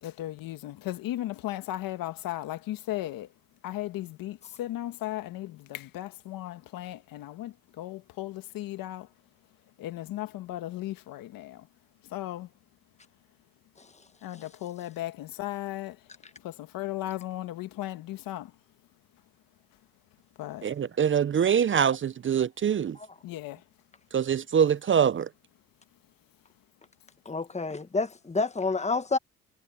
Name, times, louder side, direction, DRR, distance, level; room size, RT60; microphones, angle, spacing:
voice 1, 0.0-3.3 3.6-9.1 9.8-11.7 12.1-12.5 14.2-16.0 16.4-18.5 20.4-20.7 23.2-23.6, left 15 dB, 80° left, 1.8 m, -36 dB
voice 2, 20.6-23.0 24.1-25.3, right 8 dB, 35° right, 0.6 m, -24 dB
voice 3, 27.2-29.2, left 3 dB, 20° left, 1.5 m, -28 dB
supercardioid pair, 70°, 33 cm